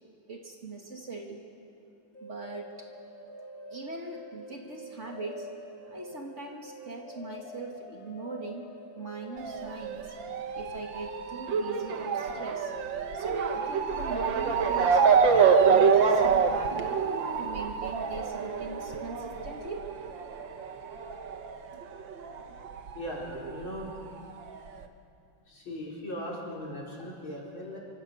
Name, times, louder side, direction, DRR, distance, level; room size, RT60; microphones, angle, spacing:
voice 1, 0.3-1.4 2.2-2.9 3.7-5.5 5.8-8.7 9.0-10.1 10.5-12.7 13.1-17.0 17.4-19.9, right 3 dB, 35° right, 1 dB, 2.4 m, -41 dB
sound 1, 2.1-19.6, equal, 20° left, 3.2 m, -46 dB
Motor vehicle (road) / Siren, 9.4-22.4 22.7-23.8 24.5-24.6 24.8-24.9, right 6 dB, 70° right, 1.8 m, -26 dB
voice 2, 22.9-23.9 25.5-27.8, equal, 80° left, -4 dB, 5.6 m, -38 dB
28.0 x 25.0 x 6.5 m, 2.6 s
omnidirectional pair, 2.2 m